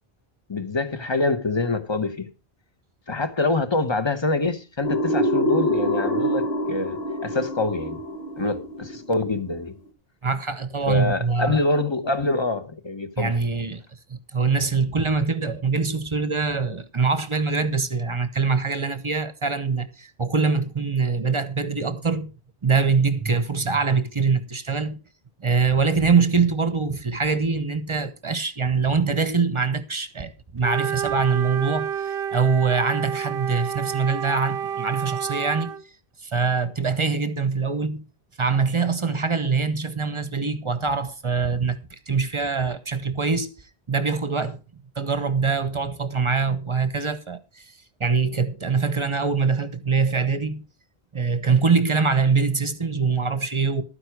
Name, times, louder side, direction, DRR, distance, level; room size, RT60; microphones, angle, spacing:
voice 1, 0.5-2.3 3.1-8.0 8.4-9.7 10.9-13.3, left 3 dB, 25° left, 1.0 m, -25 dB
sound 1, 4.8-9.5, equal, 70° left, 1.9 m, -25 dB
voice 2, 10.2-11.6 13.2-13.8 14.1-22.3 22.6-25.0 25.4-35.8 36.2-38.0 38.4-43.5 43.9-44.6 45.0-47.7 48.0-50.6 51.1-53.8, right 5 dB, 30° right, 0.9 m, -23 dB
Wind instrument woodwind instrument, 30.6-35.8, right 8 dB, 65° right, 0.9 m, -29 dB
12.5 x 9.7 x 4.6 m
omnidirectional pair, 1.1 m